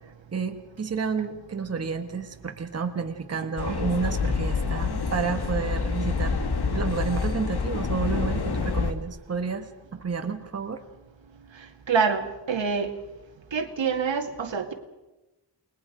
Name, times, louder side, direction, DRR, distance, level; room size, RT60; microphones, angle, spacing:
voice 1, 0.3-6.4 6.7-10.8, right 5 dB, 35° right, 6 dB, 1.4 m, -30 dB
sound 1, 3.6-8.9, left 5 dB, 60° left, 1.9 m, -27 dB
voice 2, 11.9-12.9 13.5-14.7, right 5 dB, 80° right, 5 dB, 2.3 m, -26 dB
29.0 x 21.0 x 5.0 m, 1.0 s
wide cardioid pair, 160°, 45 cm